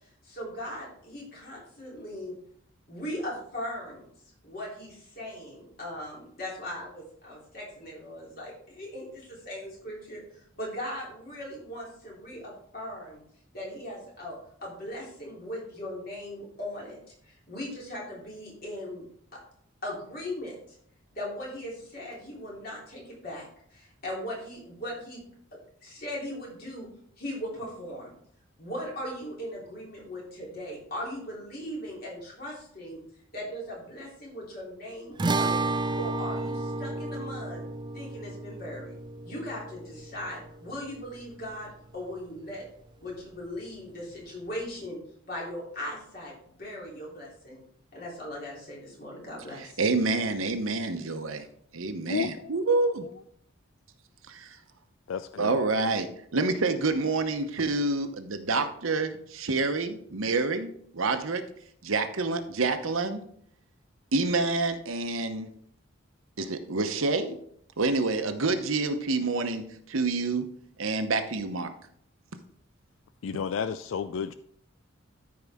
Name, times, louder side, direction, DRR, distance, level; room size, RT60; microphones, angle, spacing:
voice 1, 0.0-2.3 2.9-4.0 4.4-13.2 13.5-17.0 17.2-19.0 19.3-19.4 19.8-20.8 21.1-23.4 23.7-25.2 25.8-26.9 27.2-28.1 28.6-33.0 33.3-37.6 37.9-38.9 39.2-42.6 43.0-47.6 47.9-49.8, equal, 45° left, -4 dB, 3.3 m, -39 dB
sound 1, 35.2-41.7, right 3 dB, 20° right, 0.4 m, -32 dB
voice 2, 49.8-51.4 51.8-52.9 55.4-61.4 61.8-63.2 64.1-65.5 66.4-67.4 67.8-70.5 70.8-71.7, right 3 dB, 85° right, 8 dB, 0.9 m, -27 dB
voice 3, 52.1-52.6 55.1-55.6 73.2-74.3, left 6 dB, 70° left, 12 dB, 0.3 m, -32 dB
13.5 x 4.8 x 3.6 m, 0.67 s
head